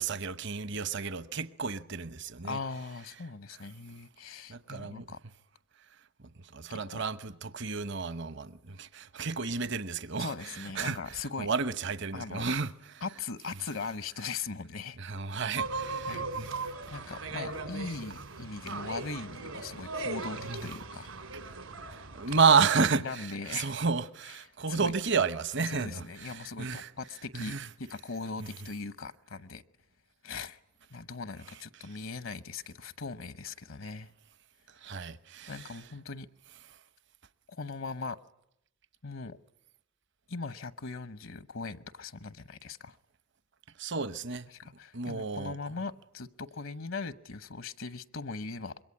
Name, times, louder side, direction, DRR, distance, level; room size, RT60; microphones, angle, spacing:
voice 1, 0.0-2.6 4.5-5.1 6.4-13.0 15.0-16.6 18.7-18.8 20.5-20.7 21.5-26.9 27.3-27.7 34.8-35.7 43.8-44.5 44.9-45.6, right 5 dB, 55° right, 1.0 m, -31 dB
voice 2, 2.4-5.2 6.7-7.0 10.2-11.5 12.1-12.5 13.0-15.0 16.1-16.3 16.9-21.1 22.3-22.4 23.0-23.7 24.7-24.9 25.7-29.6 30.2-30.6 30.9-34.1 35.5-36.3 37.5-38.2 39.0-39.4 40.3-43.0 44.5-48.8, left 4 dB, 70° left, 1.0 m, -40 dB
sound 1, 15.6-22.4, right 3 dB, 85° right, 3.4 m, -38 dB
26.0 x 22.5 x 9.9 m
head